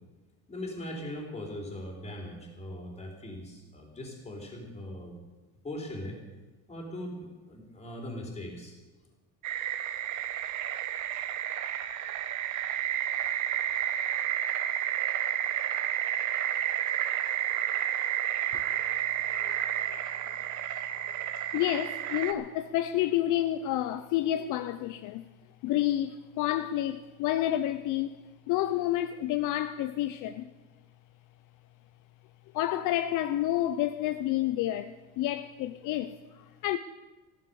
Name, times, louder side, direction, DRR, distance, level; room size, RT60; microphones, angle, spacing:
voice 1, 0.5-5.1 5.6-6.2 6.7-8.7, left 1 dB, 20° left, 3.7 m, -40 dB
sound 1, 9.4-22.3, right 11 dB, 55° right, 1.2 m, -31 dB
voice 2, 18.5-19.0 19.5-20.0 21.5-25.2 25.6-30.5 32.5-36.8, left 13 dB, 60° left, 0.7 m, -30 dB
14.5 x 12.5 x 6.9 m
cardioid pair, 150°, 35 cm